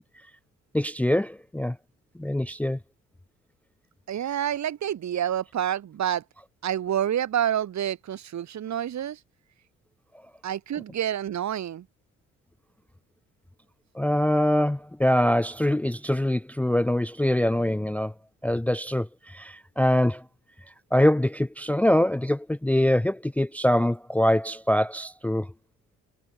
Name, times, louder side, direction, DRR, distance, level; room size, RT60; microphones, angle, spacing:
voice 1, 0.7-1.8 2.2-2.8 14.0-18.1 18.4-20.2 20.9-25.5, left 1 dB, 5° left, 0.5 m, -24 dB
voice 2, 4.1-6.2 6.6-9.2 10.4-11.9, right 10 dB, 65° right, 5.8 m, -28 dB
cardioid pair, 90°, 30 cm